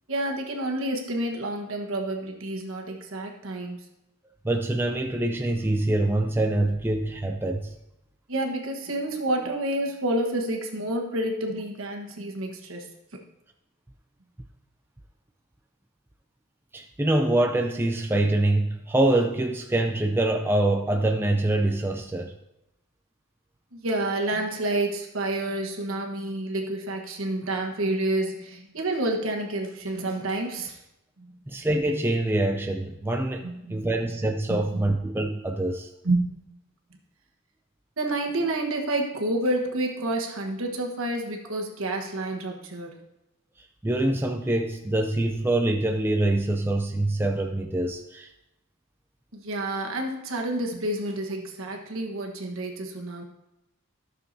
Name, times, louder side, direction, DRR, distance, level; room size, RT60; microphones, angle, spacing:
voice 1, 0.1-3.8 8.3-13.2 23.7-30.8 31.2-31.3 33.4-33.9 34.5-34.8 36.0-36.2 38.0-43.0 49.3-53.2, right 1 dB, 70° right, 2 dB, 1.3 m, -29 dB
voice 2, 4.4-7.8 16.7-22.3 31.5-35.9 43.8-48.3, right 1 dB, 10° right, 3 dB, 0.4 m, -25 dB
13.0 x 6.6 x 2.7 m, 0.88 s
head